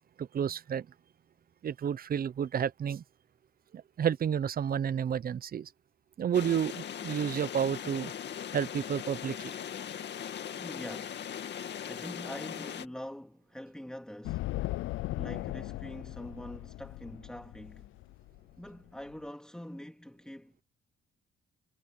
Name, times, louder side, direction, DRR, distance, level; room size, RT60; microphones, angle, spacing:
voice 1, 0.2-0.9 1.6-3.0 4.0-5.7 6.2-8.1 8.5-9.5, right 8 dB, 50° right, 0.9 m, -30 dB
sound 1, 6.3-12.9, left 9 dB, 60° left, 2.3 m, -39 dB
voice 2, 10.6-11.2 11.8-14.5 15.1-17.9 18.6-20.5, equal, 5° left, 3.0 m, -44 dB
sound 2, 14.2-19.1, left 18 dB, 85° left, 0.5 m, -38 dB
cardioid pair, 90°, 20 cm